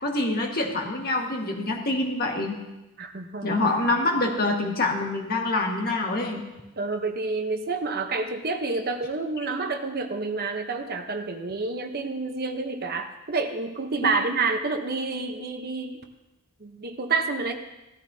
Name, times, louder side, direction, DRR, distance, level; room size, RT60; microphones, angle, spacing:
voice 1, 0.0-2.6 3.4-6.4 14.0-14.2, left 2 dB, 45° left, 1 dB, 1.7 m, -26 dB
voice 2, 3.0-3.5 6.8-16.0 16.6-17.5, right 3 dB, 45° right, 6 dB, 0.9 m, -29 dB
17.0 x 13.5 x 2.8 m, 1.0 s
head